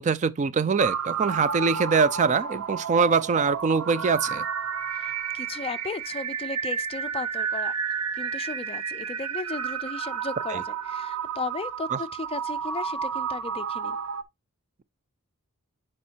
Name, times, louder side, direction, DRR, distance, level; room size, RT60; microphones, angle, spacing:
voice 1, 0.0-4.5 10.5-10.6 11.9-12.0, right 5 dB, 35° right, 0.4 m, -23 dB
sound 1, 0.8-14.2, right 7 dB, 85° right, 0.9 m, -31 dB
voice 2, 4.9-7.7 8.1-14.0, left 4 dB, 25° left, 0.4 m, -36 dB
10.5 x 4.4 x 2.8 m
head